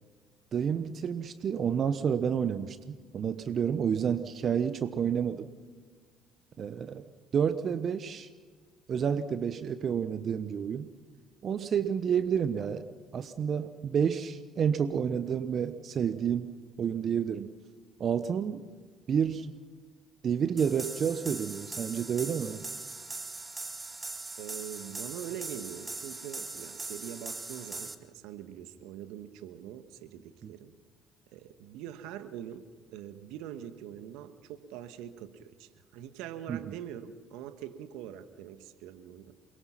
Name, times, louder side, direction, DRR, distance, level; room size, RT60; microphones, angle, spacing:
voice 1, 0.5-5.5 6.6-7.0 7.3-8.3 8.9-10.9 11.4-12.9 13.1-16.5 16.8-17.5 18.0-18.6 19.1-19.5 20.2-22.6 30.4-30.5 36.5-36.8, right 7 dB, 50° right, 11 dB, 1.1 m, -30 dB
sound 1, 20.6-27.9, right 3 dB, 25° right, 2.2 m, -40 dB
voice 2, 24.4-30.7 31.3-39.3, right 10 dB, 70° right, 10 dB, 1.5 m, -43 dB
28.5 x 22.0 x 5.9 m, 1.5 s
hypercardioid pair, 55°, 0 cm